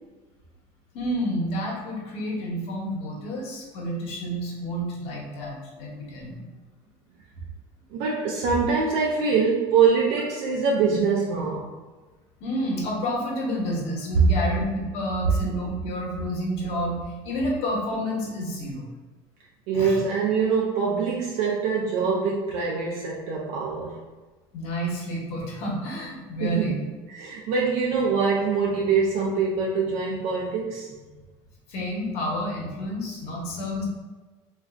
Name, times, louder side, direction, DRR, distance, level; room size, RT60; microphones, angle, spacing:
voice 1, 0.9-6.4 12.4-18.8 19.7-19.9 24.5-26.8 31.7-33.8, equal, 65° left, -2 dB, 0.9 m, -29 dB
voice 2, 7.9-11.7 19.7-24.0 26.4-26.8 27.1-30.9, right 5 dB, 70° right, -3 dB, 0.5 m, -24 dB
3.1 x 2.4 x 2.4 m, 1.3 s
supercardioid pair, 115°, 12 cm